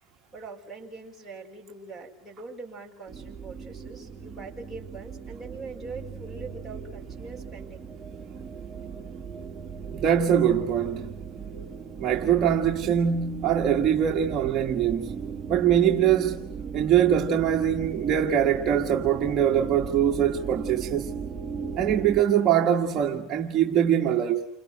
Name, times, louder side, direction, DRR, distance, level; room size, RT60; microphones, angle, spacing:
voice 1, 0.3-7.9, right 3 dB, 10° left, 6.4 m, -42 dB
sound 1, 3.1-22.2, right 6 dB, 10° right, 2.1 m, -37 dB
voice 2, 9.9-11.1 12.0-15.2 15.5-16.5 16.7-21.1 21.8-24.5, right 9 dB, 30° right, 1.5 m, -23 dB
30.0 x 26.5 x 6.3 m
cardioid pair, 170°, 0 cm